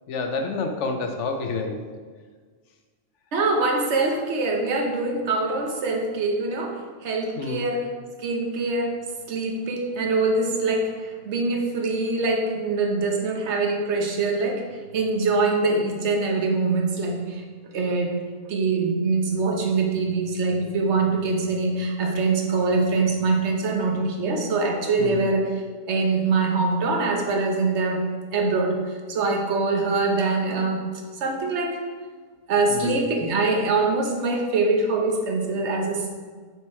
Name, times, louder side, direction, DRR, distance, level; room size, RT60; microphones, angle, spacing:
voice 1, 0.1-1.8 7.4-7.7 25.0-25.2 32.7-33.0, left 4 dB, 65° left, 4 dB, 1.0 m, -28 dB
voice 2, 3.3-7.9 8.2-8.9 9.3-14.7 14.9-17.4 17.7-18.2 18.4-25.5 25.9-28.0 28.3-28.8 29.1-30.9 31.1-31.8 32.5-36.1, right 3 dB, 60° right, 1 dB, 1.2 m, -24 dB
6.0 x 4.5 x 4.7 m, 1.5 s
omnidirectional pair, 1.4 m